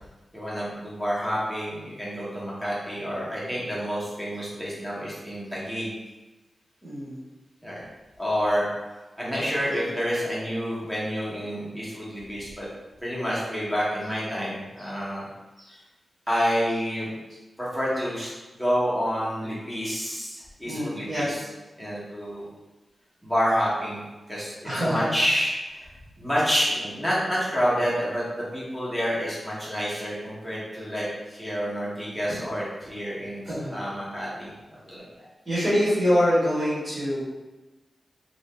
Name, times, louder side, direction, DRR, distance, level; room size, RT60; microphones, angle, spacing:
voice 1, 0.3-5.9 7.6-7.8 8.2-12.7 13.0-15.3 15.6-15.8 16.3-17.1 17.6-18.3 18.6-21.5 21.8-22.5 23.2-24.0 24.3-25.9 26.2-34.5 34.8-35.0, equal, ahead, -8 dB, 1.0 m, -28 dB
voice 2, 6.8-7.2 20.6-21.3 24.6-25.1 33.4-33.7 35.4-37.2, equal, 25° right, -13 dB, 1.3 m, -24 dB
2.8 x 2.6 x 3.3 m, 1.1 s
wide cardioid pair, 160°, 0 cm